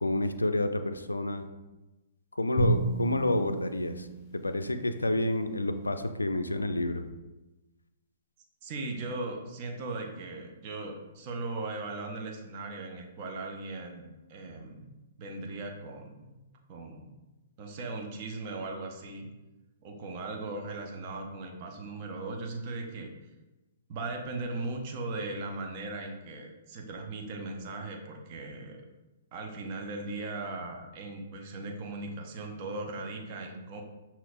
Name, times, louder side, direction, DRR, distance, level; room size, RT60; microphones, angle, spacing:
voice 1, 0.0-1.5 2.3-4.1 4.3-7.0, left 1 dB, 90° left, 9 dB, 0.3 m, -29 dB
Drum, 2.6-5.0, right 2 dB, 35° left, 0.7 m, -31 dB
voice 2, 8.6-14.9 15.2-16.3 16.7-17.1 17.6-19.3 19.8-23.1 23.9-28.9 29.3-33.8, right 2 dB, 40° right, 2 dB, 0.7 m, -38 dB
5.8 x 2.9 x 2.4 m, 1.1 s
figure-of-eight pair, 120°, 0 cm